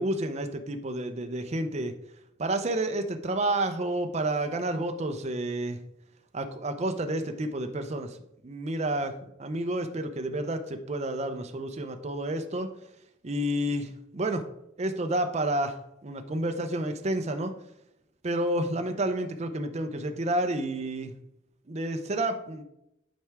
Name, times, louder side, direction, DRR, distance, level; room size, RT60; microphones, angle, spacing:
voice 1, 0.0-1.9 2.4-5.8 6.3-8.2 8.4-9.1 9.4-12.7 13.2-14.5 14.8-15.8 16.0-17.6 18.2-21.1 21.7-22.6, right 1 dB, 35° right, 6 dB, 0.6 m, -30 dB
10.0 x 4.6 x 3.5 m, 0.82 s
head